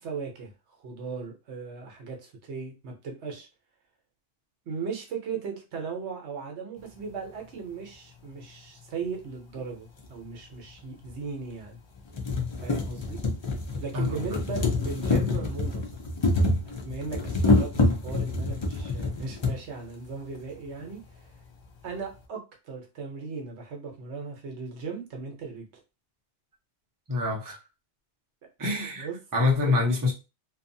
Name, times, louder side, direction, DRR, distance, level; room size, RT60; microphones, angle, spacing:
voice 1, 0.0-3.5 4.7-11.8 12.6-13.2 13.8-15.9 16.6-21.3 21.8-25.7 28.8-29.2 29.6-30.1, right 5 dB, 70° right, 2 dB, 1.0 m, -37 dB
sound 1, 10.0-10.1 11.1-11.2 11.6-11.7 12.0-19.6 20.5-20.6 20.8-20.9, left 2 dB, 40° left, 0.4 m, -27 dB
voice 2, 13.9-14.4 27.1-27.6 28.6-29.1 29.3-30.1, left 3 dB, 20° right, -2 dB, 0.6 m, -25 dB
2.6 x 2.4 x 2.6 m, 0.28 s
omnidirectional pair, 1.2 m